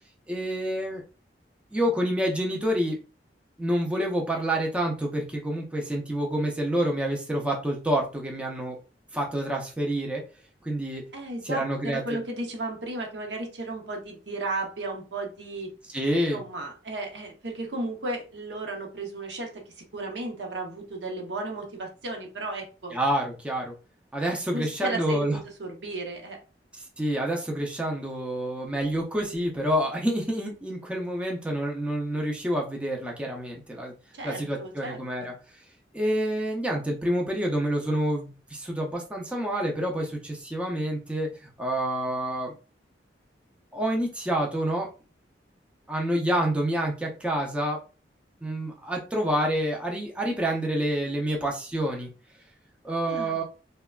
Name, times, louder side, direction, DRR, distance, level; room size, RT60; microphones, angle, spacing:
voice 1, 0.3-1.0 1.7-3.0 3.6-8.8 9.1-10.2 10.6-11.0 11.4-12.0 15.9-16.4 22.9-23.7 24.1-25.4 27.0-33.9 34.2-35.3 35.9-41.3 41.6-42.5 43.7-44.9 45.9-47.8 48.4-52.1 52.8-53.4, right 1 dB, 5° right, -1 dB, 0.5 m, -28 dB
voice 2, 11.1-15.7 16.3-19.5 19.9-22.9 24.5-26.4 34.1-35.3 53.1-53.4, right 2 dB, 80° right, 2 dB, 0.8 m, -34 dB
3.2 x 2.2 x 2.3 m, 0.33 s
head